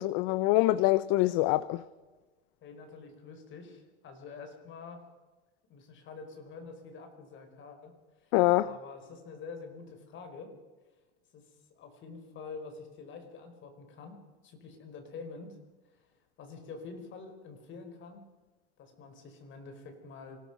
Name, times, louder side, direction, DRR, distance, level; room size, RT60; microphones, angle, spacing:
voice 1, 0.0-1.8 8.3-8.7, left 17 dB, 55° left, 0.8 m, -25 dB
voice 2, 2.6-5.0 5.7-7.9 8.2-8.3 8.6-10.5 11.3-11.4 11.7-15.6 16.4-18.2 18.8-20.4, left 4 dB, 35° left, 4.9 m, -46 dB
25.5 x 18.0 x 6.1 m
supercardioid pair, 140°, 32 cm